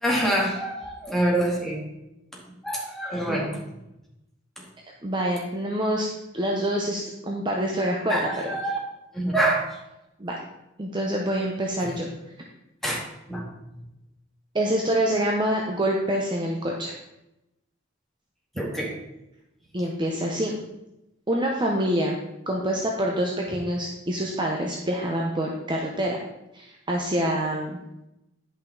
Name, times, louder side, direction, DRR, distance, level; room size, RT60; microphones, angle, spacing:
voice 1, 0.0-1.8 2.6-3.5 8.1-8.8 9.1-9.7 11.8-11.9 12.8-13.0 13.3-13.4 18.6-18.9, right 1 dB, ahead, -4 dB, 2.1 m, -25 dB
voice 2, 5.0-6.1 6.3-8.2 8.4-8.5 10.2-10.4 10.8-12.1 14.5-16.9 18.6-18.7 19.7-20.5 21.3-22.2 22.5-26.2 26.5-27.8, right 1 dB, 25° right, -1 dB, 0.8 m, -26 dB
10.5 x 5.7 x 3.9 m, 0.91 s
head